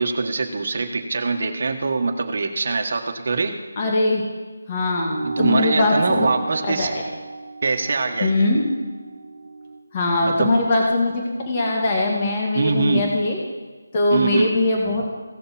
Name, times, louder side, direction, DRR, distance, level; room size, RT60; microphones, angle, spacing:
voice 1, 0.0-3.6 5.2-6.9 7.6-8.5 10.2-10.6 12.5-13.1 14.1-14.6, right 3 dB, 50° right, 4 dB, 1.4 m, -23 dB
voice 2, 3.8-4.2 4.7-6.2 6.8-6.9 8.2-8.6 9.9-13.4 13.9-15.0, left 2 dB, 25° left, -1 dB, 2.0 m, -21 dB
sound 1, 5.0-9.8, right 3 dB, 65° right, 1.1 m, -32 dB
17.0 x 6.6 x 4.3 m, 1.3 s
figure-of-eight pair, 165°, 0 cm